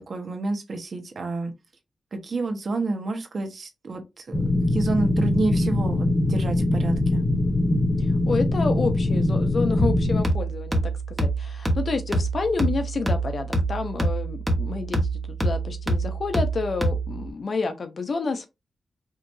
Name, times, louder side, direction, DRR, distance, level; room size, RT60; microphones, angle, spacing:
voice 1, 0.1-1.5 2.1-7.2, right 3 dB, 60° right, 1.3 m, -29 dB
sound 1, 4.3-10.2, left 1 dB, 20° left, 1.1 m, -22 dB
voice 2, 8.3-15.0 15.3-18.5, left 4 dB, 60° left, 0.9 m, -29 dB
sound 2, 9.8-17.3, right 2 dB, 10° right, 1.4 m, -26 dB
5.1 x 2.9 x 2.7 m
cardioid pair, 75°, 0 cm